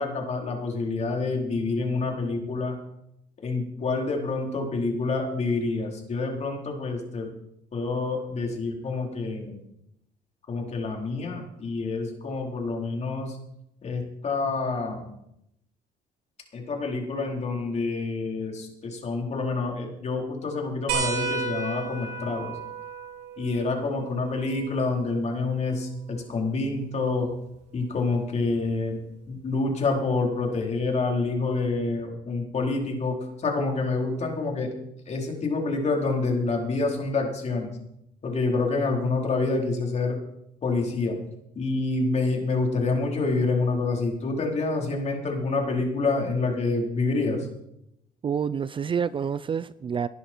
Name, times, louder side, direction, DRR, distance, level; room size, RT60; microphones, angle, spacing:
voice 1, 0.0-2.8 3.4-7.3 7.7-9.6 10.5-13.4 13.8-15.1 16.5-22.5 23.4-27.3 27.7-29.0 29.3-34.7 35.1-37.7 38.2-40.2 40.6-41.2 41.6-47.5, left 3 dB, 40° left, 0 dB, 4.2 m, -27 dB
sound 1, 20.9-26.0 27.5-27.6 29.3-29.4, right 5 dB, 90° right, 3.9 m, -34 dB
voice 2, 48.2-50.1, right 7 dB, 30° right, 16 dB, 0.5 m, -28 dB
19.5 x 11.0 x 4.6 m, 0.80 s
cardioid pair, 110°, 17 cm